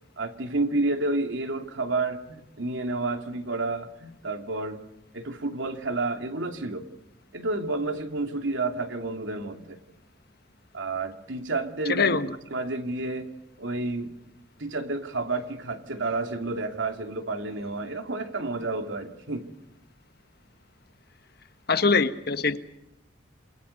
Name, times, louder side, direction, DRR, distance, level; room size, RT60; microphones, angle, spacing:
voice 1, 0.2-4.8 5.1-6.9 7.3-9.8 10.7-12.2 12.5-13.3 13.6-14.1 14.6-19.5, right 2 dB, 75° right, 5 dB, 2.7 m, -30 dB
voice 2, 12.0-12.3 21.7-22.6, left 4 dB, 55° left, 10 dB, 1.3 m, -22 dB
28.5 x 22.5 x 5.4 m, 0.83 s
head